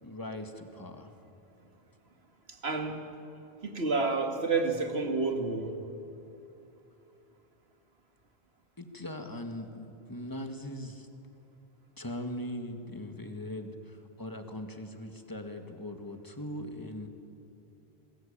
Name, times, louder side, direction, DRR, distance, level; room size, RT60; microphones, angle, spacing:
voice 1, 0.0-1.1 8.8-11.1 12.0-17.1, left 1 dB, 20° left, 5 dB, 1.9 m, -40 dB
voice 2, 2.5-3.0 3.6-5.7, right 3 dB, 75° right, 4 dB, 2.3 m, -29 dB
28.0 x 21.0 x 8.8 m, 2.8 s
omnidirectional pair, 1.1 m